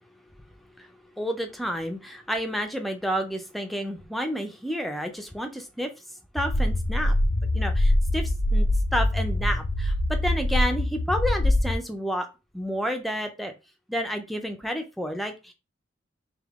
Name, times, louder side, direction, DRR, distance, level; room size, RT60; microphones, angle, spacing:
voice 1, 1.2-5.9 6.3-7.1 7.5-12.3 12.5-13.5 13.9-15.5, equal, ahead, 5 dB, 0.5 m, -30 dB
sound 1, 6.4-11.8, left 1 dB, 65° left, 0.6 m, -24 dB
3.5 x 2.8 x 3.5 m, 0.28 s
head